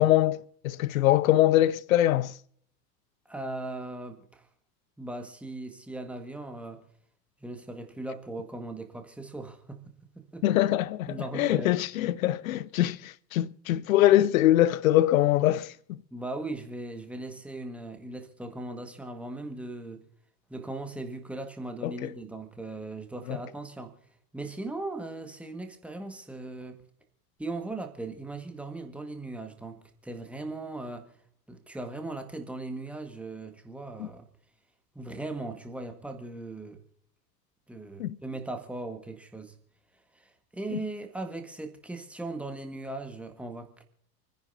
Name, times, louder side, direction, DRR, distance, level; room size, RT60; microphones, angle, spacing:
voice 1, 0.0-2.3 10.4-16.0 21.8-22.1 23.3-23.4 34.0-34.1 38.0-38.2, left 14 dB, 55° left, 0.6 m, -23 dB
voice 2, 3.3-4.5 5.0-6.8 7.4-9.8 10.1-10.4 11.1-11.8 16.1-20.0 20.5-23.9 24.3-26.8 27.4-31.1 31.5-34.3 34.9-36.8 37.7-39.5 40.1-43.8, right 2 dB, 5° right, 1.7 m, -38 dB
28.5 x 10.5 x 2.7 m
figure-of-eight pair, 85°, 49 cm